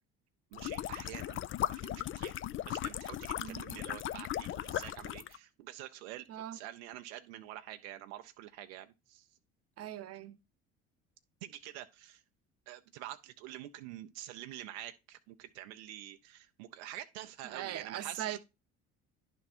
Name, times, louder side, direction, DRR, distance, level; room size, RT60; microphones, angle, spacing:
sound 1, 0.5-5.4, left 12 dB, 40° left, 0.4 m, -37 dB
voice 1, 0.5-2.3 2.7-6.3 6.5-9.3 11.4-12.2 12.7-18.4, right 13 dB, 80° right, 0.6 m, -47 dB
voice 2, 6.3-6.6 9.8-10.4 17.4-18.4, right 12 dB, 45° right, 0.8 m, -40 dB
10.0 x 3.5 x 4.2 m
hypercardioid pair, 65°, 34 cm